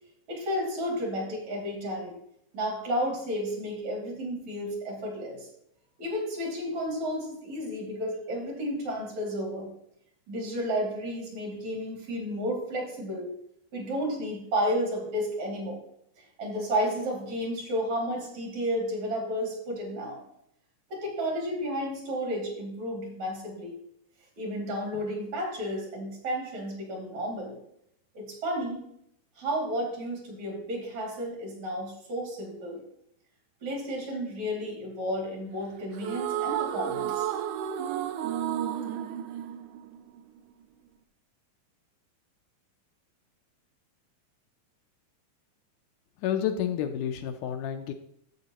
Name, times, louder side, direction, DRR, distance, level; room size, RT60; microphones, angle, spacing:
voice 1, 0.3-2.2 2.5-5.5 6.0-9.7 10.3-13.3 13.7-15.8 16.4-20.2 20.9-23.7 24.4-27.6 28.2-28.8 29.4-32.8 33.6-37.3, equal, 55° right, -1 dB, 3.6 m, -32 dB
sound 1, 36.0-40.4, right 10 dB, 80° right, 2.0 m, -32 dB
voice 2, 46.2-47.9, left 9 dB, 80° left, 6 dB, 2.0 m, -30 dB
11.0 x 7.9 x 2.9 m, 0.74 s
omnidirectional pair, 3.9 m